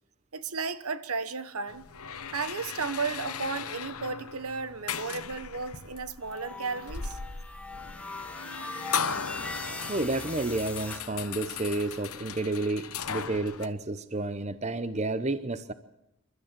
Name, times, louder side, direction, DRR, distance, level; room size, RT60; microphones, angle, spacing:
voice 1, 0.3-1.8 2.3-7.2, right 4 dB, 85° right, 1.2 m, -34 dB
sound 1, 1.7-13.7, left 6 dB, 80° left, 1.1 m, -37 dB
sound 2, 6.2-11.0, left 3 dB, 5° left, 1.3 m, -40 dB
voice 2, 9.9-15.7, right 2 dB, 30° right, 0.8 m, -31 dB
28.0 x 13.0 x 7.5 m
head